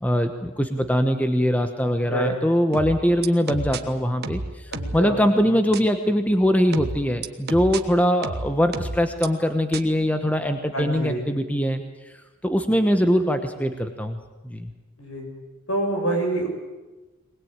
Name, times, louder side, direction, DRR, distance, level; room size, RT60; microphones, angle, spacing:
voice 1, 0.0-11.8 12.4-14.2 14.4-14.7, equal, 5° left, 7 dB, 1.1 m, -22 dB
sound 1, 2.7-3.8 4.2-5.0 5.7-5.8 6.7-7.8 8.2-9.3 9.7-9.8, right 2 dB, 50° right, 1.4 m, -30 dB
voice 2, 4.7-5.2 10.7-11.2 15.0-15.3 15.7-16.5, right 1 dB, 70° left, 2 dB, 7.2 m, -26 dB
21.5 x 20.5 x 9.0 m, 1.2 s
head